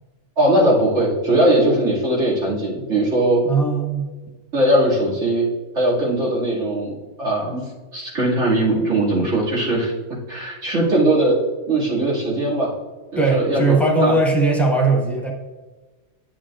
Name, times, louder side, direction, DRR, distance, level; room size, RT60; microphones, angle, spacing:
voice 1, 0.4-3.4 4.5-5.5 5.7-7.6 7.9-9.9 10.3-11.4 11.7-12.7 13.1-14.2, right 1 dB, 90° right, -6 dB, 2.6 m, -19 dB
voice 2, 3.4-4.0 13.2-15.3, right 3 dB, ahead, -1 dB, 1.2 m, -19 dB
9.6 x 7.4 x 2.4 m, 1.3 s
omnidirectional pair, 1.2 m